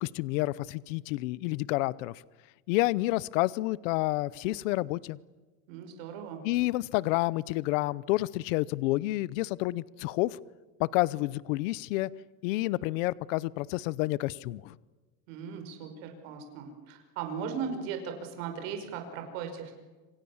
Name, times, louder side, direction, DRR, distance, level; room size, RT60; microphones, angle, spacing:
voice 1, 0.0-2.1 2.7-5.2 6.4-10.4 10.8-12.1 12.4-14.8, left 19 dB, 60° left, 21 dB, 0.8 m, -29 dB
voice 2, 5.7-6.4 15.3-19.7, right 6 dB, 60° right, 5 dB, 5.4 m, -38 dB
27.0 x 27.0 x 7.2 m, 1.2 s
supercardioid pair, 175°, 44 cm